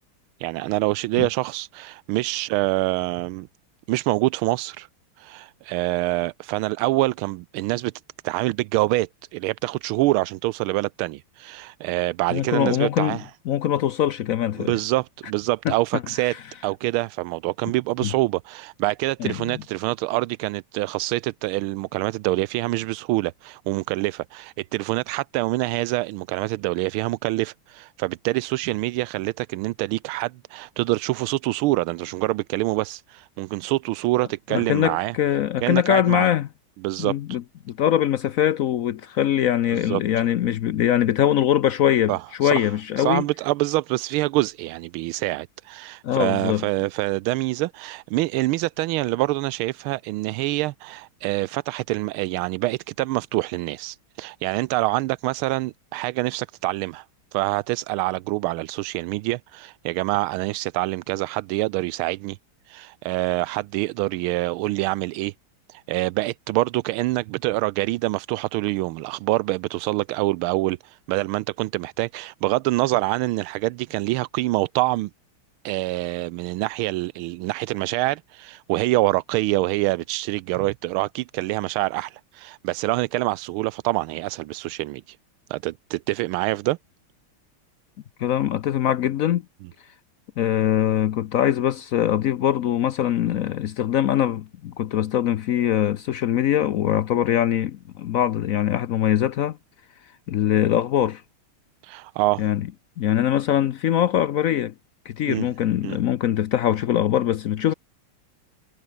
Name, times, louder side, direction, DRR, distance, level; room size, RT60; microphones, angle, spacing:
voice 1, 0.4-3.5 3.9-4.9 5.2-7.9 8.2-13.2 14.6-16.3 16.6-35.1 35.6-36.3 36.8-37.4 39.8-40.0 42.1-42.7 43.0-57.0 57.3-62.4 62.7-65.3 65.7-75.1 75.6-85.2 85.5-86.8 101.8-102.4 105.3-105.5 105.8-106.0, right 19 dB, 85° right, 1.4 m, -25 dB
voice 2, 12.3-13.2 13.5-14.7 15.6-15.7 16.3-16.4 18.0-18.1 19.2-19.6 34.5-36.5 37.0-43.2 46.0-46.7 88.2-89.4 90.4-99.6 100.3-101.2 102.4-102.7 103.0-104.7 105.1-107.7, left 11 dB, 85° left, 0.7 m, -22 dB
omnidirectional pair, 2.3 m